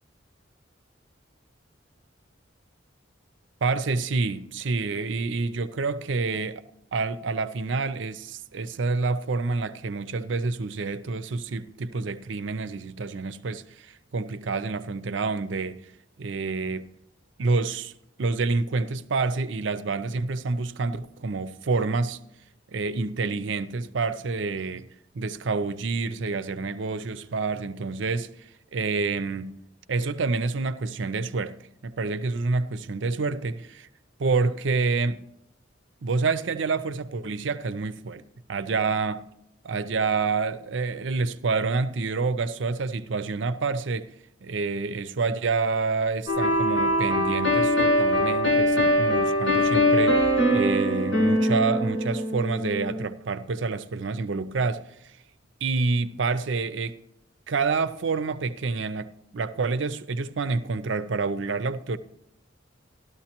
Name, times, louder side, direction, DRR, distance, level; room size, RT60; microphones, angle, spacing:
voice 1, 3.6-6.6 6.9-15.8 16.2-16.9 17.4-17.9 18.2-22.2 22.7-24.9 25.1-28.3 28.7-29.5 29.9-31.5 31.8-33.9 34.2-35.2 36.0-38.2 38.5-39.3 39.6-44.1 44.4-54.8 55.6-57.0 57.5-62.0, right 4 dB, 75° right, 0.5 m, -28 dB
sound 1, 46.3-53.0, equal, 85° left, 2.6 m, -22 dB
13.0 x 12.5 x 2.9 m
head